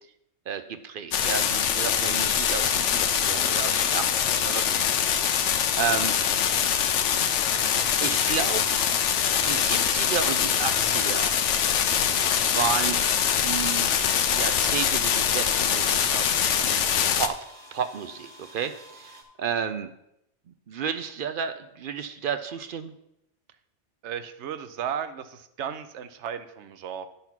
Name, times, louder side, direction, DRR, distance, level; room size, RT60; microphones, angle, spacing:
voice 1, 0.5-6.1 8.0-8.6 9.4-11.4 12.5-13.0 13.4-13.9 14.3-17.4 17.7-19.9 20.7-22.9, right 7 dB, 60° right, 10 dB, 0.6 m, -32 dB
sound 1, 1.1-17.3, left 8 dB, 85° left, 1.0 m, -24 dB
sound 2, 4.2-19.2, right 1 dB, 35° right, 1.6 m, -47 dB
voice 2, 24.0-27.1, right 8 dB, 75° right, 11 dB, 1.0 m, -35 dB
10.5 x 4.1 x 5.8 m, 0.82 s
omnidirectional pair, 1.2 m